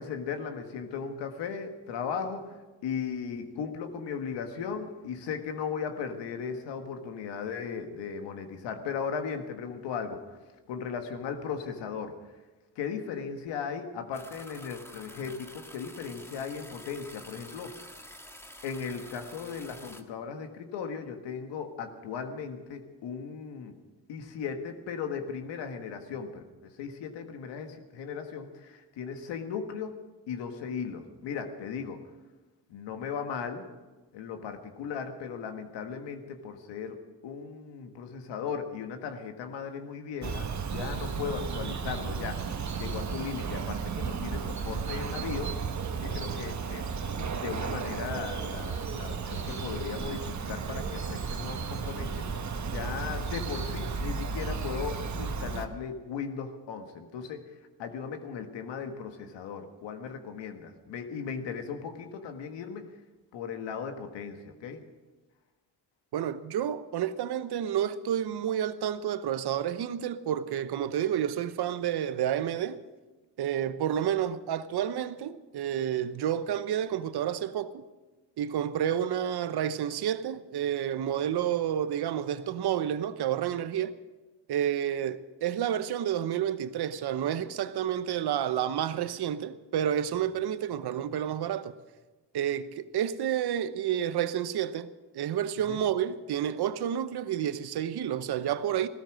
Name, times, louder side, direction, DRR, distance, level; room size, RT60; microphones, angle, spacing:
voice 1, 0.0-2.6 2.8-10.4 10.7-12.2 12.7-17.9 18.6-23.7 24.1-30.0 30.3-32.0 32.7-33.6 34.1-45.6 46.0-57.4 57.8-62.8 63.3-64.8 90.1-90.2 95.6-95.8, left 6 dB, 85° left, 1.6 m, -37 dB
sound 1, 14.1-20.0, left 1 dB, 5° left, 1.5 m, -48 dB
Bird vocalization bird call bird song, 40.2-55.7, right 5 dB, 40° right, 1.3 m, -34 dB
voice 2, 66.1-72.8 73.4-77.8 78.4-83.9 84.5-91.7 92.3-94.9 95.1-98.9, right 10 dB, 65° right, 1.0 m, -30 dB
16.0 x 13.5 x 6.3 m
supercardioid pair, 60°, 42 cm